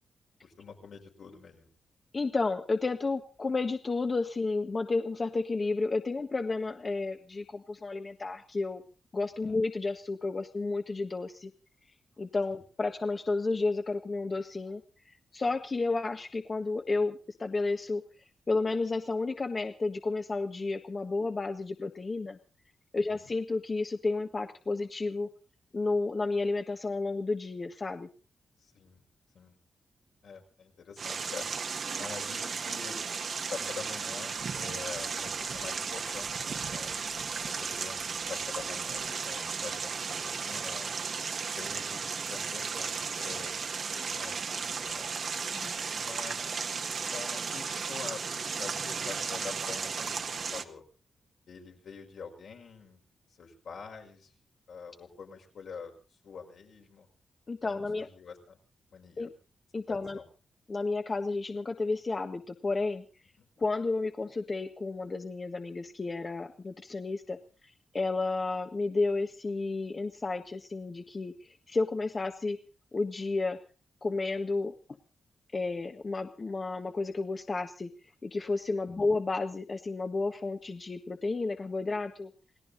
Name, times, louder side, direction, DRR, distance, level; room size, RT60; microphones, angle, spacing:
voice 1, 0.4-1.7 9.4-9.6 12.5-12.6 23.0-23.3 28.6-29.0 29.3-29.6 30.2-31.4 32.0-33.0 33.5-36.9 37.4-41.0 41.6-43.6 44.0-45.1 45.9-46.7 47.1-50.8 51.5-53.0 53.4-54.3 54.7-55.9 56.2-57.1 57.6-58.6 58.9-59.3 59.9-60.2 63.4-63.5 78.8-79.0, left 5 dB, 75° left, 1 dB, 5.4 m, -46 dB
voice 2, 2.1-8.8 9.1-11.5 12.2-18.0 18.5-22.4 22.9-25.3 25.7-28.1 45.5-45.7 57.5-58.1 59.2-59.3 59.7-60.2 60.7-63.0 63.6-67.4 67.6-72.6 72.9-73.6 74.0-74.7 75.5-77.9 78.2-82.3, left 3 dB, 35° left, 5 dB, 1.3 m, -32 dB
sound 1, 31.0-50.6, right 5 dB, 60° right, 1.6 m, -35 dB
29.0 x 17.5 x 2.7 m, 0.36 s
cardioid pair, 85°, 0 cm